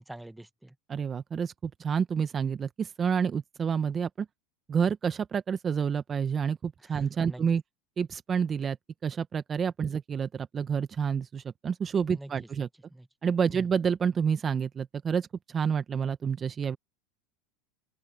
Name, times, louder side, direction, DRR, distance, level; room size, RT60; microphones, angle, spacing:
voice 1, 0.0-0.7 6.8-7.4 12.1-12.3 12.6-13.1 13.5-13.6, right 1 dB, 5° right, 1.1 m, -46 dB
voice 2, 0.9-4.3 4.7-7.6 8.0-8.8 9.0-12.7 13.2-16.8, right 6 dB, 30° right, 0.9 m, -29 dB
open air
supercardioid pair, 110°, 0 cm